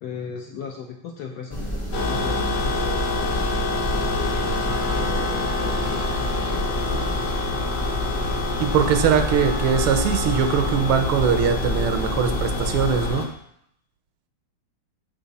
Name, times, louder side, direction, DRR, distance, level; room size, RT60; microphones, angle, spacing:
voice 1, 0.0-3.3 3.6-6.8, left 6 dB, 75° left, 1 dB, 0.9 m, -36 dB
sound 1, 1.5-13.1, equal, 30° left, 0.5 m, -30 dB
sound 2, 1.9-13.3, left 3 dB, 60° left, 1.2 m, -27 dB
Trumpet, 4.6-11.2, right 3 dB, 45° right, 0.6 m, -40 dB
voice 2, 8.6-13.3, right 7 dB, 80° right, 7 dB, 1.5 m, -21 dB
6.2 x 3.8 x 4.0 m, 0.71 s
omnidirectional pair, 2.3 m